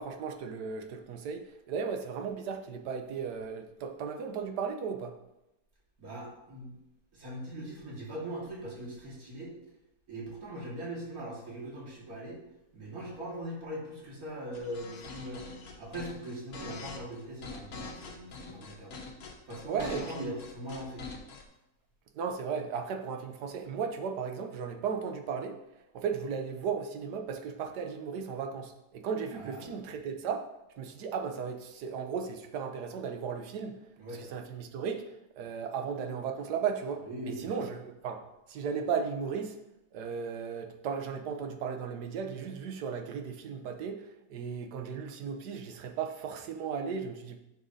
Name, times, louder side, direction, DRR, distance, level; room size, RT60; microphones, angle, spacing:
voice 1, 0.0-5.1 19.7-20.3 22.1-25.6 25.9-30.5 30.8-33.8 34.2-39.6 39.9-47.4, right 6 dB, 90° right, 6 dB, 1.4 m, -35 dB
voice 2, 6.0-6.7 7.1-9.5 10.1-12.4 12.7-15.4 15.8-19.0 19.5-21.0 29.3-29.7 34.0-34.2 37.1-37.7, right 1 dB, 65° right, -4 dB, 2.4 m, -41 dB
sound 1, 14.5-21.4, left 4 dB, 70° left, 1.4 m, -44 dB
9.3 x 5.9 x 2.7 m, 0.89 s
omnidirectional pair, 1.7 m